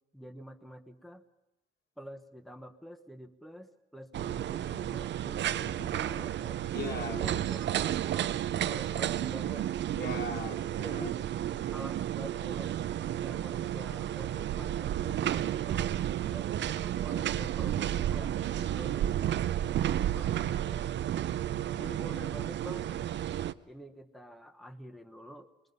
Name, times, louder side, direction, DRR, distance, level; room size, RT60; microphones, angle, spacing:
voice 1, 0.1-1.2 2.0-6.6 7.1-7.8 8.3-9.7 10.9-11.1 11.7-12.8 13.1-21.2 21.7-23.0 23.7-25.5, equal, ahead, 7 dB, 1.1 m, -47 dB
sound 1, 4.1-23.5, right 11 dB, 65° right, 0.6 m, -32 dB
voice 2, 6.7-7.6 10.0-11.1 21.5-22.0, left 3 dB, 55° left, 3 dB, 2.7 m, -40 dB
23.5 x 22.0 x 5.4 m, 1.0 s
cardioid pair, 90°, 20 cm